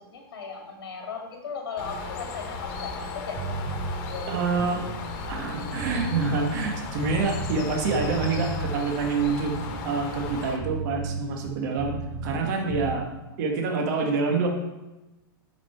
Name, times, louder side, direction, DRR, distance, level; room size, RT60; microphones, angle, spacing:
voice 1, 0.0-4.6, left 5 dB, 85° left, 1 dB, 2.2 m, -37 dB
Bird, 1.8-10.6, left 3 dB, 45° left, 1.6 m, -36 dB
sound 1, 3.4-4.0 4.5-7.6 7.9-8.8 9.3-12.4 12.7-13.0, right 3 dB, 20° right, 0.9 m, -34 dB
voice 2, 4.3-4.8 5.3-9.5 9.8-12.0 12.2-13.1 13.4-14.5, right 4 dB, 50° right, 2 dB, 1.7 m, -26 dB
9.2 x 5.7 x 4.5 m, 1.0 s
hypercardioid pair, 140°, 12 cm